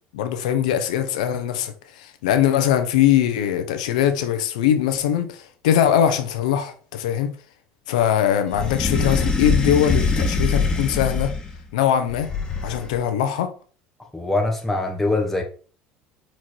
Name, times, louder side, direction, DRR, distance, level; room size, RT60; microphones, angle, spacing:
voice 1, 0.1-7.3 7.9-11.3 11.7-12.3 12.6-13.5, left 10 dB, 90° left, 1.0 m, -21 dB
sound 1, 8.5-11.6 12.1-13.0, left 4 dB, 20° left, 1.7 m, -23 dB
voice 2, 14.1-15.4, left 2 dB, 5° left, 1.3 m, -23 dB
4.6 x 4.6 x 4.5 m
supercardioid pair, 95°, 4 cm